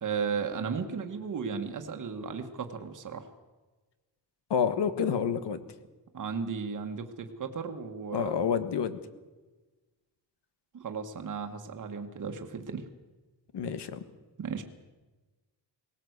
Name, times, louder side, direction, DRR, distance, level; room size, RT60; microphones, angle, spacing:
voice 1, 0.0-3.3 6.1-8.3 10.8-12.8 14.4-14.6, right 6 dB, 45° right, 5 dB, 1.5 m, -35 dB
voice 2, 4.5-5.6 8.1-9.0 13.5-14.0, left 7 dB, 70° left, 11 dB, 1.6 m, -28 dB
19.5 x 17.5 x 8.1 m, 1.2 s
wide cardioid pair, 180°, 43 cm